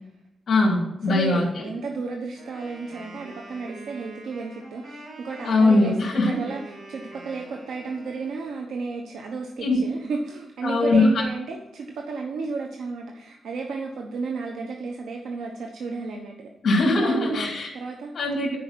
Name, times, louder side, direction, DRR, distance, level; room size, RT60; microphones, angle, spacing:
voice 1, 0.5-1.6 5.4-6.4 9.6-9.8 10.6-11.1 16.6-17.7 18.1-18.6, left 2 dB, 50° left, -3 dB, 2.9 m, -21 dB
voice 2, 1.1-6.6 6.9-16.5 16.9-18.1, right 4 dB, 90° right, 1 dB, 1.1 m, -33 dB
Wind instrument woodwind instrument, 2.4-8.6, right 2 dB, 65° right, 2.7 m, -45 dB
10.5 x 4.9 x 7.4 m, 0.86 s
wide cardioid pair, 120°, 0 cm